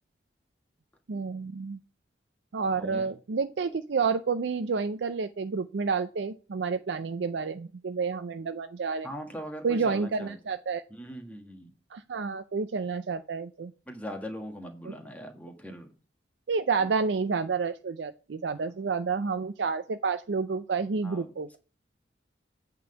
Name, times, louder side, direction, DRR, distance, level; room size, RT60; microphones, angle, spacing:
voice 1, 1.1-1.8 2.5-9.1 9.6-10.8 11.9-13.7 16.5-21.5, right 5 dB, 80° right, 10 dB, 0.5 m, -29 dB
voice 2, 2.7-3.0 9.0-10.4 10.9-11.7 13.9-15.9 16.8-16.9 18.5-18.7 21.0-21.3, equal, 10° left, 4 dB, 1.4 m, -40 dB
8.6 x 3.7 x 6.8 m, 0.38 s
head